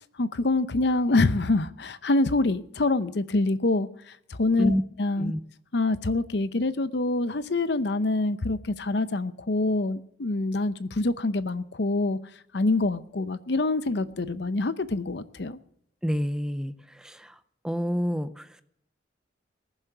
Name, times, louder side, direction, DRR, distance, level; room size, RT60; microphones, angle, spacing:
voice 1, 0.2-3.9 4.3-5.3 5.7-12.2 12.5-15.6, left 2 dB, 65° left, 0.7 m, -25 dB
voice 2, 16.0-17.4 17.6-18.6, equal, 5° right, 0.5 m, -28 dB
19.5 x 7.4 x 6.8 m
head